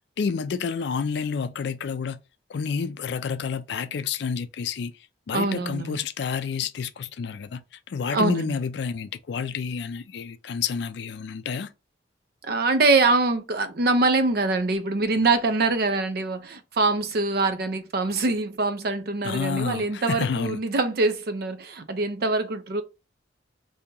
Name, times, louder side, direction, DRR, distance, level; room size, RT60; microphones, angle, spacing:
voice 1, 0.2-2.2 2.5-4.9 5.3-11.7 19.2-20.6, left 6 dB, 60° left, 0.3 m, -29 dB
voice 2, 5.3-6.0 8.1-8.6 12.4-22.8, right 3 dB, 55° right, 0.5 m, -24 dB
2.8 x 2.7 x 3.6 m
head